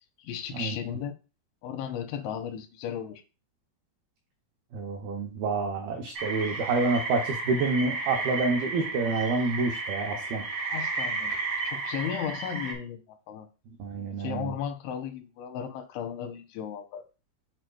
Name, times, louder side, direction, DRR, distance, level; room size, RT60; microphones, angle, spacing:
voice 1, 0.2-1.1 1.6-3.2 10.7-11.4 11.6-13.5 14.0-17.0, left 8 dB, 85° left, 3.0 m, -35 dB
voice 2, 4.7-10.4 13.8-14.6, right 3 dB, 85° right, 2.1 m, -28 dB
sound 1, 6.1-12.7, right 4 dB, 65° right, 0.7 m, -33 dB
9.1 x 4.7 x 2.3 m
omnidirectional pair, 5.4 m